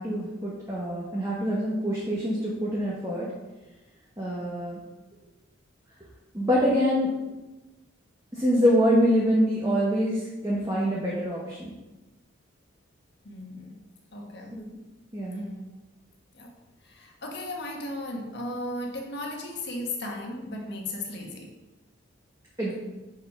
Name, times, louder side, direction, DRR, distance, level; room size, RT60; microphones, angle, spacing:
voice 1, 0.0-3.3 4.2-4.8 6.3-7.2 8.3-11.7 14.5-14.8 15.1-15.4 22.6-22.7, equal, 15° right, -6 dB, 1.4 m, -25 dB
voice 2, 13.2-13.8 14.1-14.6 15.3-15.6 16.3-16.5 16.8-21.5, left 1 dB, 60° left, 1 dB, 1.4 m, -36 dB
6.5 x 5.7 x 5.6 m, 1.1 s
head